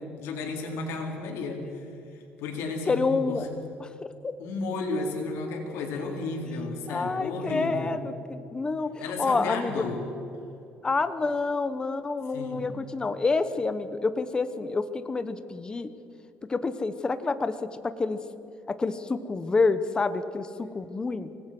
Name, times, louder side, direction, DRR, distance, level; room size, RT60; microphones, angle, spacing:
voice 1, 0.0-3.4 4.4-8.0 9.0-10.1 12.3-12.7, left 3 dB, 85° left, 0 dB, 4.3 m, -33 dB
voice 2, 2.9-3.5 3.8-3.9 4.2-4.3 6.9-9.8 10.8-15.9 16.5-17.5 17.8-18.2 18.7-21.3, left 3 dB, 20° left, 11 dB, 1.1 m, -28 dB
25.5 x 19.0 x 6.2 m, 2.8 s
cardioid pair, 140°, 4 cm